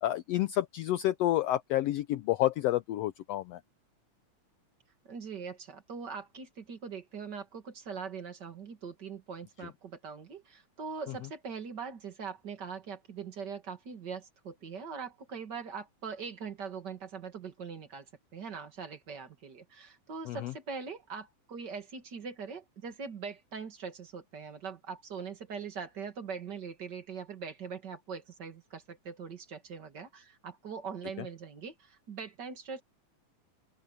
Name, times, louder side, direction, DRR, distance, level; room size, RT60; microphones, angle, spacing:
voice 1, 0.0-3.6 20.3-20.5, left 14 dB, 80° left, 1.4 m, -29 dB
voice 2, 5.0-18.1 18.3-32.8, right 6 dB, 35° right, 2.5 m, -42 dB
open air
omnidirectional pair, 3.5 m